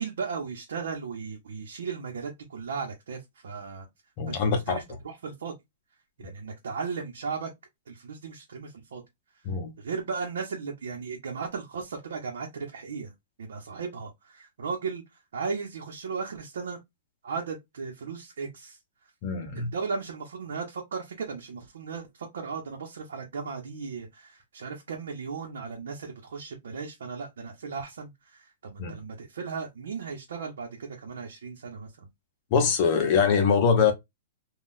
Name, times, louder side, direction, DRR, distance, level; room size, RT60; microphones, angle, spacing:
voice 1, 0.0-3.9 4.3-5.5 6.2-7.5 7.9-9.0 9.8-13.1 13.4-15.0 15.3-16.8 17.2-18.8 19.7-32.1, right 5 dB, 85° right, 0.9 m, -36 dB
voice 2, 4.2-4.8 6.2-6.3 9.4-9.7 19.2-19.7 28.8-29.0 32.5-33.9, left 6 dB, 30° left, 0.7 m, -23 dB
3.8 x 2.3 x 2.5 m
hypercardioid pair, 180°, 0 cm